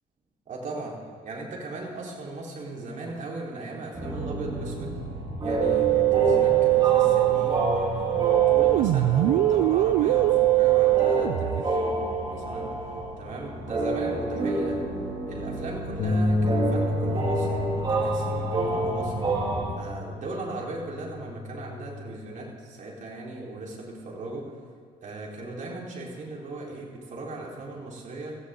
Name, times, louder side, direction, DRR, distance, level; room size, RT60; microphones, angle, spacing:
voice 1, 0.5-1.0 1.2-5.0 5.4-8.2 8.5-12.7 13.2-14.8 15.3-19.3 19.8-24.5 25.0-28.4, right 2 dB, 50° right, -3 dB, 4.2 m, -38 dB
sound 1, 3.9-19.7, right 2 dB, 30° right, 3.6 m, -29 dB
Musical instrument, 5.6-11.6, right 17 dB, 85° right, 0.5 m, -21 dB
sound 2, 16.0-22.2, left 2 dB, 70° left, 2.4 m, -30 dB
16.5 x 15.0 x 3.8 m, 2.1 s
cardioid pair, 110°, 17 cm